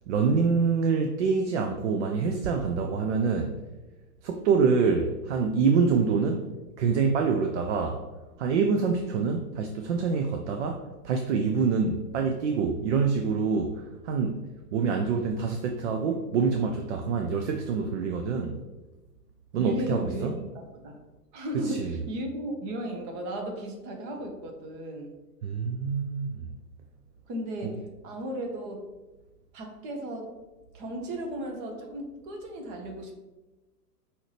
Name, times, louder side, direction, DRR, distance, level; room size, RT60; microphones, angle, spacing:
voice 1, 0.1-3.6 4.2-6.5 6.8-8.0 8.4-14.4 14.7-18.6 19.5-20.3 21.6-21.9 25.4-26.5 27.6-27.8, right 5 dB, 50° right, 4 dB, 0.5 m, -26 dB
voice 2, 19.6-20.3 20.5-21.0 21.3-25.1 27.3-28.9 29.5-30.4 30.7-33.1, right 1 dB, 35° right, 2 dB, 0.9 m, -35 dB
5.4 x 2.8 x 3.2 m, 1.1 s
hypercardioid pair, 120°, 48 cm